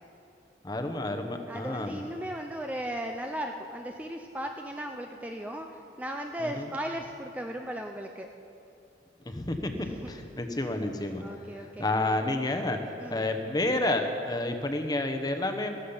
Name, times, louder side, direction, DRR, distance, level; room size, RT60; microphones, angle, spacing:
voice 1, 0.6-2.0 6.4-6.7 9.3-11.2 11.6-12.8 13.1-15.7, left 2 dB, 20° left, 6 dB, 1.0 m, -30 dB
voice 2, 1.5-8.3 9.7-10.1 11.2-12.2 13.0-13.2, right 1 dB, 10° right, 3 dB, 0.5 m, -37 dB
15.0 x 13.5 x 5.6 m, 2.6 s
head